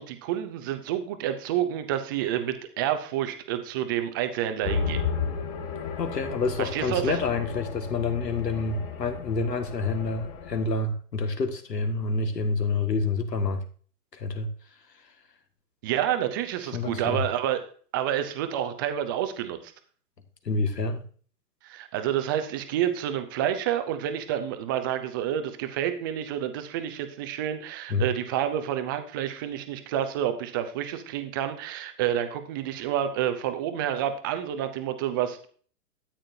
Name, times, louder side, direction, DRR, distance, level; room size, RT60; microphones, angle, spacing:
voice 1, 0.0-5.0 6.6-7.1 15.8-17.7 17.9-19.7 21.6-35.5, right 10 dB, 15° right, 9 dB, 0.5 m, -29 dB
sound 1, 4.6-10.7, left 6 dB, 35° left, 2.3 m, -33 dB
voice 2, 6.0-13.6 14.1-14.5 16.7-17.2 20.4-21.1 27.9-28.1, left 3 dB, 75° left, 6 dB, 1.9 m, -28 dB
13.0 x 8.9 x 2.7 m, 0.43 s
figure-of-eight pair, 120°, 49 cm